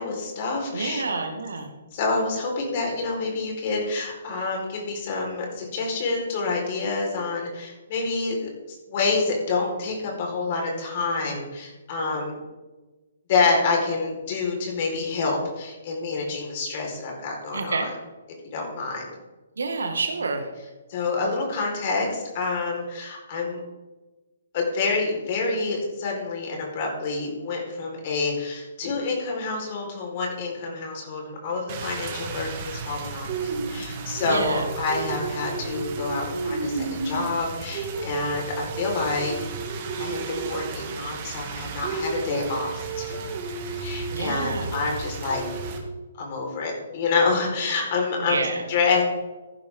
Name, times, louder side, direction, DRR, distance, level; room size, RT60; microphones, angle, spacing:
voice 1, 0.0-1.0 1.9-12.4 13.3-17.8 18.5-19.1 20.9-23.6 24.5-39.5 40.0-43.2 43.7-45.4 46.2-49.0, left 4 dB, 45° left, 0 dB, 4.5 m, -27 dB
voice 2, 0.7-1.7 17.5-17.9 19.6-20.5 34.2-34.7 44.1-44.9 48.2-48.7, right 3 dB, 75° right, 5 dB, 2.0 m, -28 dB
Rain, 31.7-45.8, right 4 dB, 40° right, 2.3 m, -32 dB
15.0 x 11.0 x 3.8 m, 1.2 s
figure-of-eight pair, 130°, 0 cm